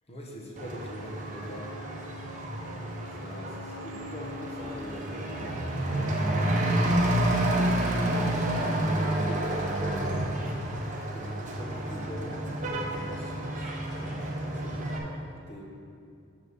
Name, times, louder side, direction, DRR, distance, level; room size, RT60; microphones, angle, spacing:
voice 1, 0.1-1.7 2.5-7.4 8.0-10.3 11.1-15.6, equal, 30° left, -2 dB, 1.3 m, -43 dB
Truck / Accelerating revving vroom, 0.6-15.0, right 1 dB, 35° right, 0.9 m, -29 dB
6.3 x 5.9 x 6.9 m, 2.5 s
head